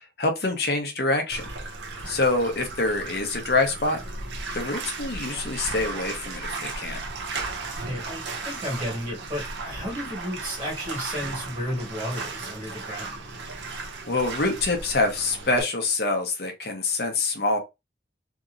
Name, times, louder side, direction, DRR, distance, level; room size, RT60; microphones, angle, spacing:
voice 1, 0.2-1.5 2.1-4.0 4.5-7.0 14.1-17.6, left 2 dB, 60° left, 0.8 m, -25 dB
Bathtub (filling or washing), 1.3-15.6, right 3 dB, 75° right, 0.7 m, -35 dB
voice 2, 7.8-13.2, equal, 25° right, 1.5 m, -33 dB
2.9 x 2.7 x 2.5 m
head